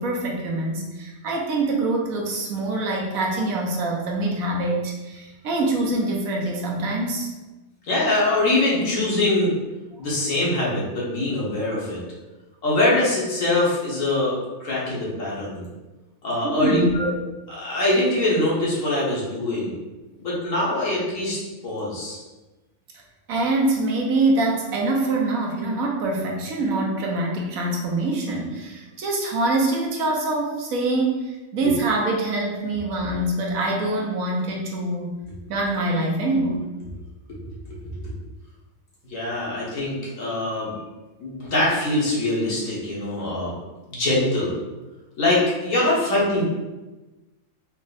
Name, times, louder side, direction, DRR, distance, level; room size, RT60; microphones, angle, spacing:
voice 1, 0.0-7.3 16.4-16.9 23.3-35.1 35.5-36.7, right 2 dB, 80° right, -1 dB, 1.2 m, -24 dB
voice 2, 7.9-9.5 10.0-12.0 12.6-15.7 16.2-17.1 17.5-19.7 20.2-22.2 31.6-31.7 37.3-37.8 38.0-38.1 39.0-40.8 41.2-43.5 43.9-44.5 45.2-46.4, left 2 dB, 65° left, -6 dB, 1.5 m, -23 dB
4.4 x 2.1 x 3.9 m, 1.1 s
omnidirectional pair, 1.5 m